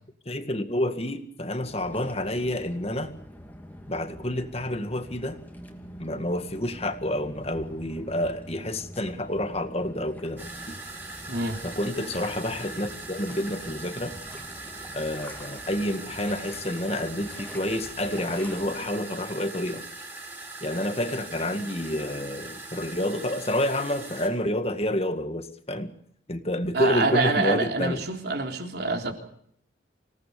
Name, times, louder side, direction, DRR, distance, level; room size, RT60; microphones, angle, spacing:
voice 1, 0.3-3.1 3.9-5.4 6.0-10.8 11.6-14.1 14.9-19.8 20.6-25.9 26.3-28.0, left 1 dB, 30° left, 9 dB, 1.9 m, -29 dB
sound 1, 1.6-18.9, equal, 10° left, 2.7 m, -45 dB
sound 2, 10.4-24.3, right 3 dB, 10° right, 5.9 m, -41 dB
voice 2, 11.3-11.6 26.7-29.1, right 3 dB, 55° right, 4 dB, 3.6 m, -26 dB
26.5 x 18.0 x 6.9 m, 0.68 s
head